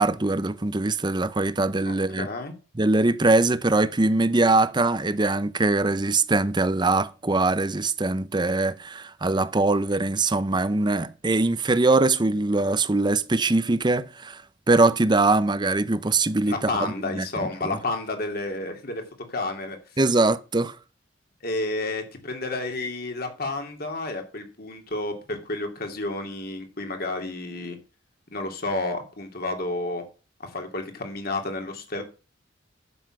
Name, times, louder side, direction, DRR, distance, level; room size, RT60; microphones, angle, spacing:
voice 1, 0.0-2.3 2.8-14.4 14.7-16.7 17.0-17.3 20.0-20.8, right 2 dB, 25° right, 0.6 m, -22 dB
voice 2, 1.8-2.5 16.4-19.0 19.3-19.8 21.4-27.8 28.3-30.0 30.4-32.0, left 2 dB, 50° left, 2.6 m, -31 dB
11.0 x 7.2 x 6.0 m
head